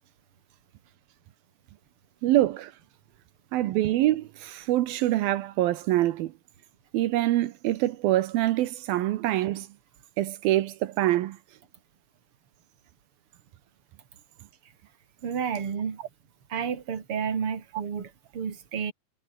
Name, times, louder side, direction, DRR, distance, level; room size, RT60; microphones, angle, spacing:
voice 1, 2.2-2.7 3.5-6.3 6.9-9.7 10.2-11.4, right 15 dB, 80° right, 2.8 m, -25 dB
voice 2, 15.2-16.0 16.5-18.9, right 7 dB, 40° right, 3.3 m, -31 dB
omnidirectional pair, 4.2 m